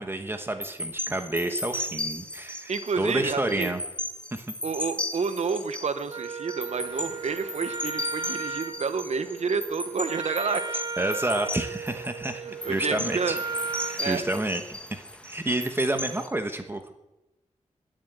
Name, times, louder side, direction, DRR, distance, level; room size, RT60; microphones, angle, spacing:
voice 1, 0.0-3.8 4.3-4.4 11.0-12.4 12.7-13.4 14.0-16.9, right 1 dB, 20° right, 6 dB, 1.1 m, -29 dB
sound 1, 0.6-16.3, left 1 dB, 10° left, 1.4 m, -36 dB
voice 2, 2.7-3.7 4.6-10.8 12.4-13.4 14.0-14.3, right 5 dB, 60° right, 10 dB, 1.0 m, -29 dB
Wind instrument woodwind instrument, 6.1-14.0, right 4 dB, 35° right, 0.8 m, -36 dB
20.0 x 7.7 x 8.0 m, 0.96 s
wide cardioid pair, 155°, 13 cm